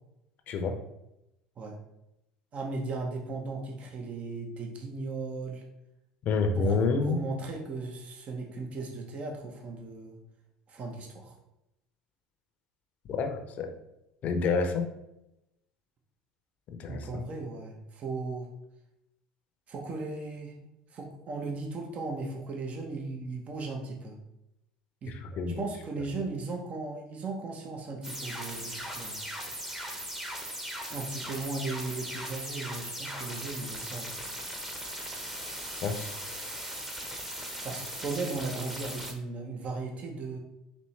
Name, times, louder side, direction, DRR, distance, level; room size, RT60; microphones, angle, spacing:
voice 1, 2.5-5.6 6.5-10.2 10.7-11.3 16.9-18.5 19.7-20.5 20.9-24.2 25.0-25.1 25.5-29.3 30.9-34.1 37.6-40.4, right 3 dB, 40° right, 1 dB, 0.8 m, -37 dB
voice 2, 6.3-7.2 13.1-13.7 14.2-14.9 16.8-17.0 25.4-25.6 35.8-36.1, left 4 dB, 50° left, 6 dB, 0.6 m, -28 dB
sound 1, 28.0-39.1, right 1 dB, 10° right, 0.9 m, -38 dB
4.3 x 2.9 x 3.2 m, 0.88 s
hypercardioid pair, 75°, 3 cm